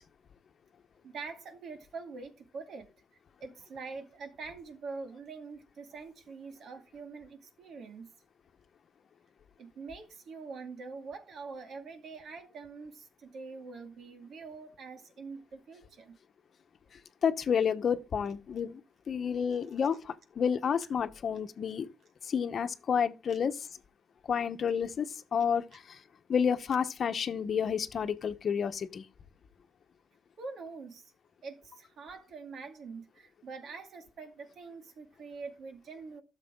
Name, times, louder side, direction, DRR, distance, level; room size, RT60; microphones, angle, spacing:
voice 1, 1.0-2.9 3.4-8.1 9.6-16.2 23.3-23.4 30.4-31.1 31.4-36.2, right 4 dB, 65° right, 2.2 m, -44 dB
voice 2, 17.2-18.8 19.1-21.9 22.2-23.7 24.3-26.0 26.3-29.0, left 7 dB, 50° left, 1.0 m, -30 dB
12.5 x 6.9 x 3.7 m
cardioid pair, 90°, 0 cm